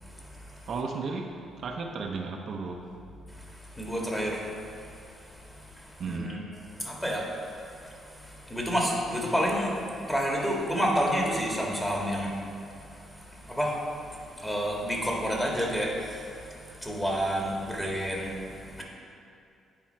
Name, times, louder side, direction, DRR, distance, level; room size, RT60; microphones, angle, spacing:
voice 1, 0.7-1.3 1.6-2.8 6.0-6.4, right 4 dB, 60° right, 2 dB, 0.6 m, -34 dB
voice 2, 3.6-4.5 5.3-5.4 5.8-6.4 6.8-9.7 10.0-12.3 13.3-18.8, equal, 10° left, -2 dB, 1.6 m, -30 dB
9.5 x 4.3 x 4.4 m, 2.6 s
cardioid pair, 90°, 0 cm